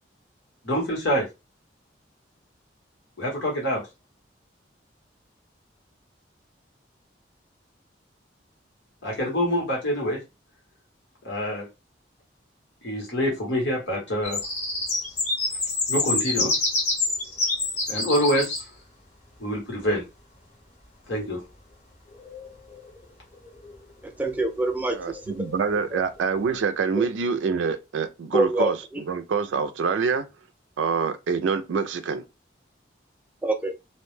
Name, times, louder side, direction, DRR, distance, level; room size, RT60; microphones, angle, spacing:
voice 1, 0.6-1.3 3.2-3.8 9.0-10.2 11.2-11.7 12.8-14.4 15.9-16.5 17.9-18.6 19.4-20.0 21.1-21.4, equal, 85° left, 1.3 m, -25 dB
sound 1, 14.2-18.6 22.1-23.0 23.3-23.8 24.3-24.5 24.8-26.5, left 2 dB, 40° left, 1.2 m, -28 dB
voice 2, 24.0-25.2 25.9-26.0 26.9-27.1 28.3-29.0 33.4-33.7, right 2 dB, 10° right, 0.3 m, -26 dB
voice 3, 24.9-30.3 30.8-32.2, right 5 dB, 85° right, 0.3 m, -26 dB
2.6 x 2.1 x 3.2 m
head